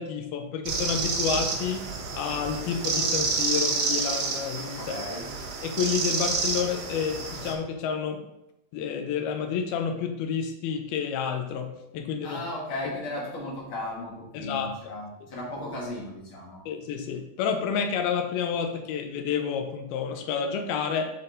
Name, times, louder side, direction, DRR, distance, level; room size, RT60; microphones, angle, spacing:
voice 1, 0.0-1.9 2.1-5.0 5.6-8.2 8.7-12.4 14.3-14.8 16.7-21.1, left 7 dB, 85° left, 5 dB, 2.5 m, -29 dB
sound 1, 0.7-7.5, right 4 dB, 80° right, 3.0 m, -29 dB
voice 2, 4.8-5.2 12.2-16.6, left 1 dB, 50° left, -4 dB, 1.7 m, -36 dB
8.7 x 3.8 x 3.8 m, 0.86 s
omnidirectional pair, 4.6 m